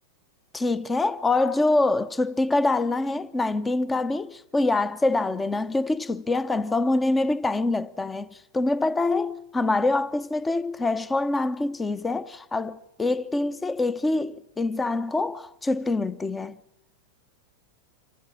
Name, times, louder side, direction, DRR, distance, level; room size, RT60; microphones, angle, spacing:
voice 1, 0.5-16.6, left 2 dB, 10° left, 0.9 m, -25 dB
26.5 x 15.0 x 9.7 m
figure-of-eight pair, 90°, 0 cm